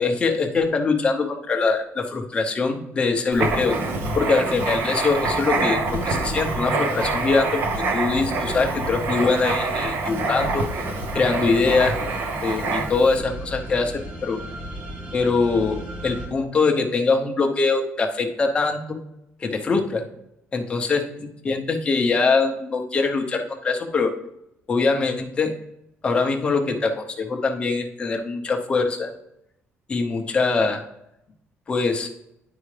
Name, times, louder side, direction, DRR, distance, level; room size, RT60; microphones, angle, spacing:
voice 1, 0.0-3.8 4.1-7.6 7.9-10.6 11.1-12.0 12.4-14.4 15.1-19.0 19.4-20.1 20.5-21.0 21.4-24.1 24.7-25.5 26.0-29.1 29.9-30.8 31.7-32.1, left 4 dB, 20° left, 3 dB, 0.7 m, -23 dB
Writing, 3.3-13.1, right 3 dB, 45° right, 0.8 m, -26 dB
sound 1, 6.8-16.3, right 1 dB, 30° right, 1.6 m, -38 dB
9.9 x 4.7 x 3.2 m, 0.84 s
cardioid pair, 180°, 5 cm